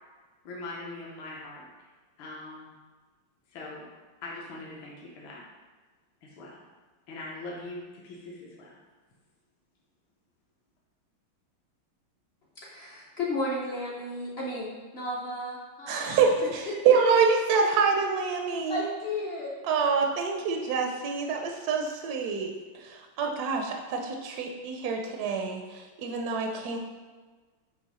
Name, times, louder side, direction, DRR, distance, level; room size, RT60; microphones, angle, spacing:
voice 1, 0.5-1.7 2.2-2.7 3.5-3.9 4.2-5.4 6.2-6.6 7.1-8.8, left 2 dB, 70° left, -3 dB, 1.7 m, -41 dB
voice 2, 12.6-16.2 18.7-19.6, left 1 dB, 55° left, -4 dB, 0.6 m, -34 dB
voice 3, 15.9-18.8 19.7-22.5 22.8-26.8, right 5 dB, 75° right, 3 dB, 0.9 m, -26 dB
7.0 x 3.0 x 4.8 m, 1.4 s
omnidirectional pair, 2.3 m